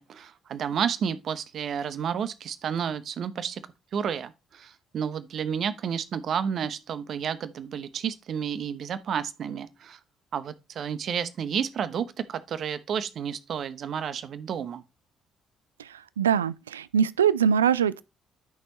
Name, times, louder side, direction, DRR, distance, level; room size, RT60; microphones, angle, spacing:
voice 1, 0.0-3.6 3.9-10.0 10.3-14.8, right 7 dB, 50° right, 0.9 m, -31 dB
voice 2, 15.8-18.0, right 8 dB, 80° right, 0.3 m, -23 dB
12.0 x 6.3 x 3.1 m
figure-of-eight pair, 45°, 0 cm